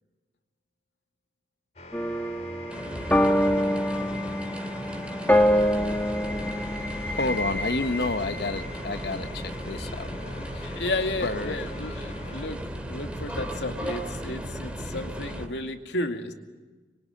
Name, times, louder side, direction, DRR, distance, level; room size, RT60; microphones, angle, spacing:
sound 1, 1.8-12.5, left 2 dB, 40° left, 2.3 m, -46 dB
sound 2, 1.9-8.7, left 1 dB, 10° left, 1.4 m, -26 dB
sound 3, 2.7-15.5, equal, 5° right, 2.7 m, -36 dB
voice 1, 7.1-10.7 11.2-11.6 14.8-14.9, left 2 dB, 65° left, 8 dB, 1.1 m, -30 dB
voice 2, 10.6-16.3, left 2 dB, 90° left, 5 dB, 2.3 m, -33 dB
25.5 x 23.5 x 9.3 m, 1.3 s
head